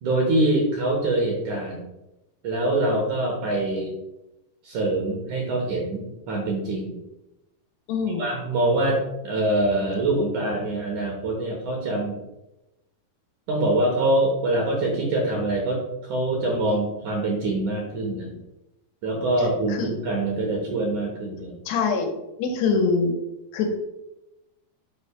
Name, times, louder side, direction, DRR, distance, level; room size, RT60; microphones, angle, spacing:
voice 1, 0.0-1.9 2.4-3.9 4.6-7.0 8.2-12.2 13.5-18.3 19.0-21.5, right 2 dB, 65° right, -1 dB, 2.1 m, -24 dB
voice 2, 7.9-8.2 19.9-20.0 21.7-22.1 22.4-23.1 23.5-23.8, left 4 dB, 80° left, 3 dB, 3.0 m, -23 dB
10.5 x 5.6 x 2.2 m, 0.94 s
omnidirectional pair, 4.7 m